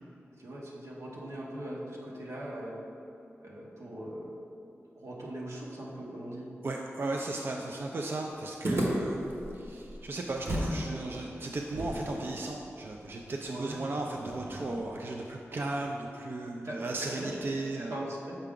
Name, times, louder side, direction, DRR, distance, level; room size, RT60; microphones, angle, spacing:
voice 1, 0.4-2.8 3.4-4.3 5.0-6.5 13.5-13.9 16.6-16.8 17.1-17.3 17.8-18.4, right 1 dB, 90° right, -4 dB, 1.1 m, -40 dB
voice 2, 6.6-9.2 9.5-18.0, right 2 dB, 50° right, 1 dB, 0.4 m, -35 dB
sound 1, 8.6-10.8 11.1-11.2 11.7-14.8, right 1 dB, 70° right, 1.2 m, -35 dB
6.7 x 4.7 x 3.7 m, 2.9 s
wide cardioid pair, 70°, 5 cm